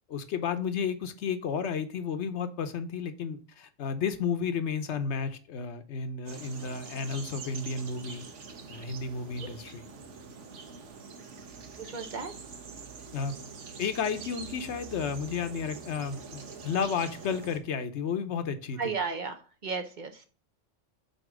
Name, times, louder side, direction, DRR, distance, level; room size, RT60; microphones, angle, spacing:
voice 1, 0.1-8.2 8.7-9.8 13.1-13.3 13.8-18.8, left 6 dB, 70° left, 10 dB, 1.0 m, -32 dB
sound 1, 6.3-17.6, right 5 dB, 80° right, 1.3 m, -45 dB
voice 2, 9.4-9.7 11.8-12.3 18.8-19.4 19.6-20.3, right 5 dB, 45° right, 5 dB, 0.8 m, -34 dB
7.8 x 2.9 x 6.1 m, 0.38 s
omnidirectional pair, 1.2 m